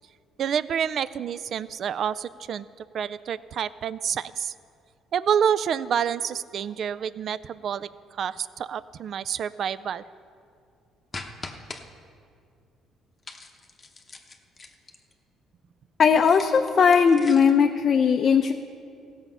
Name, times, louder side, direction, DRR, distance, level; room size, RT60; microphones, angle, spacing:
voice 1, 0.4-2.7 2.9-4.5 5.1-7.9 8.2-10.0, right 8 dB, 50° right, 17 dB, 0.3 m, -28 dB
sound 1, 11.1-11.8 13.2-15.1 16.2-17.6, left 3 dB, 25° left, 0.9 m, -41 dB
voice 2, 16.0-18.5, left 6 dB, 40° left, 4 dB, 0.5 m, -18 dB
16.5 x 7.0 x 5.5 m, 2.3 s
cardioid pair, 130°, 0 cm